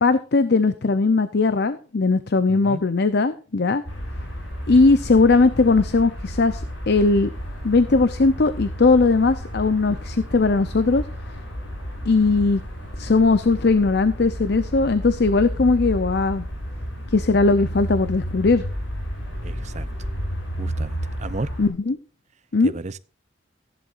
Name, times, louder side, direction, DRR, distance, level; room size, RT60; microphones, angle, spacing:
voice 1, 0.0-3.8 4.7-7.3 7.6-11.0 12.1-12.6 13.0-16.4 17.1-18.6 21.6-22.0 22.5-22.7, left 3 dB, 55° left, 0.6 m, -19 dB
voice 2, 2.5-2.8 19.4-19.9 20.6-21.5 22.6-23.0, right 3 dB, 35° right, 0.6 m, -33 dB
sound 1, 3.8-21.7, equal, 75° left, 7.5 m, -32 dB
15.0 x 11.0 x 2.5 m
head